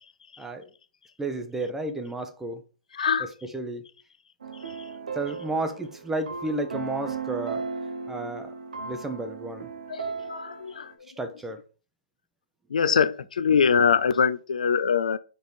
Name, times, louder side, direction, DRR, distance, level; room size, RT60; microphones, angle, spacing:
voice 1, 0.4-0.7 1.2-2.6 3.5-3.8 5.1-7.6 8.1-8.5 8.8-9.7 11.2-11.6, right 2 dB, 5° right, 0.7 m, -32 dB
voice 2, 2.9-3.3 4.6-4.9 9.9-11.1 12.7-15.2, left 6 dB, 75° left, 0.4 m, -24 dB
sound 1, 4.4-10.9, right 5 dB, 80° right, 1.1 m, -36 dB
4.6 x 4.5 x 5.1 m
hypercardioid pair, 140°, 4 cm